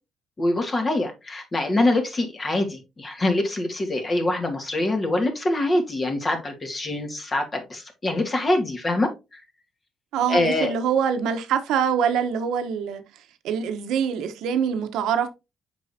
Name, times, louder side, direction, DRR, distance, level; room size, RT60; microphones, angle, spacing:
voice 1, 0.4-9.4 10.3-10.8, left 2 dB, 35° left, 2.3 m, -24 dB
voice 2, 10.1-13.0 13.4-15.3, right 7 dB, 85° right, 1.1 m, -24 dB
7.6 x 5.4 x 2.8 m
cardioid pair, 90°, 0 cm